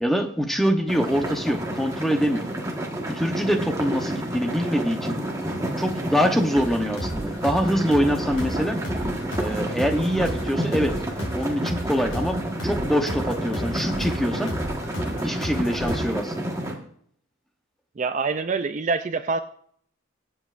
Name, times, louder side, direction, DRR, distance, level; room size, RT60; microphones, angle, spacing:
voice 1, 0.0-2.5 3.1-5.2 5.8-8.8 9.4-11.0 11.3-14.5 15.2-16.5, equal, ahead, 4 dB, 0.9 m, -24 dB
sound 1, 0.9-16.7, right 1 dB, 15° right, 1.4 m, -30 dB
sound 2, 6.6-16.0, equal, 65° left, 4.8 m, -33 dB
voice 2, 18.0-19.4, right 4 dB, 35° right, 10 dB, 0.4 m, -25 dB
23.0 x 8.0 x 2.5 m, 0.63 s
head